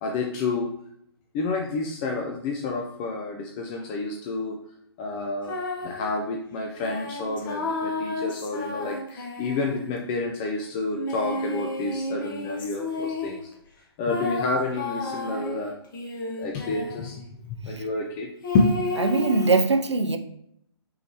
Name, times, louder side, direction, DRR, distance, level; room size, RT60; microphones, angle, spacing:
voice 1, 0.0-0.7 1.3-4.6 5.0-5.6 5.8-13.5 14.0-15.7 16.4-19.0, left 3 dB, 20° left, 1 dB, 0.4 m, -29 dB
sound 1, 5.4-6.1 6.8-10.1 10.9-13.5 14.1-17.2 18.4-19.5, left 2 dB, 50° left, 0.9 m, -32 dB
voice 2, 19.0-20.2, right 3 dB, 85° right, 8 dB, 0.4 m, -22 dB
5.5 x 3.2 x 2.8 m, 0.74 s
figure-of-eight pair, 125°, 14 cm